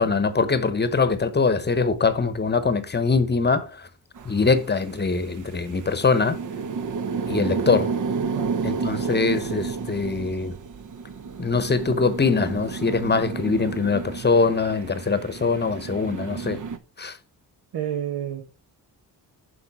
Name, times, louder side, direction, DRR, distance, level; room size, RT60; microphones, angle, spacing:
voice 1, 0.0-3.9 4.2-6.4 7.3-7.9 8.6-10.5 11.4-16.6 17.0-17.2, left 4 dB, 25° left, 0.9 m, -23 dB
sound 1, 4.1-16.8, right 5 dB, 50° right, 0.8 m, -31 dB
voice 2, 8.2-8.6 17.7-18.4, right 10 dB, 80° right, 1.2 m, -30 dB
7.0 x 5.3 x 4.7 m
cardioid pair, 105°, 39 cm